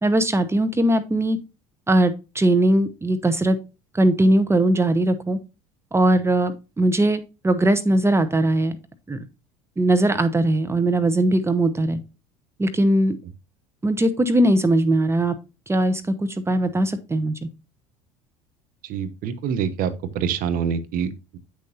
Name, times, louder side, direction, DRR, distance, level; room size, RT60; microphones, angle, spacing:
voice 1, 0.0-1.4 1.9-3.6 3.9-5.4 5.9-8.7 9.1-9.2 9.8-12.0 12.6-13.2 13.8-15.3 15.7-17.5, right 1 dB, 15° right, 0.9 m, -20 dB
voice 2, 18.8-21.4, right 7 dB, 55° right, 1.0 m, -26 dB
8.1 x 6.4 x 2.7 m
hypercardioid pair, 70°, 17 cm